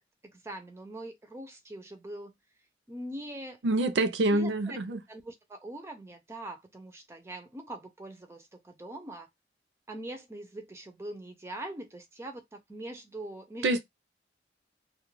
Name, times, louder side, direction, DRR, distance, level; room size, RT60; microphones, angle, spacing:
voice 1, 0.3-2.3 2.9-3.6 4.3-9.3 9.9-13.8, right 1 dB, 15° right, 0.3 m, -42 dB
voice 2, 3.6-5.0 13.6-13.8, right 2 dB, 90° right, 0.5 m, -26 dB
2.2 x 2.1 x 3.0 m
head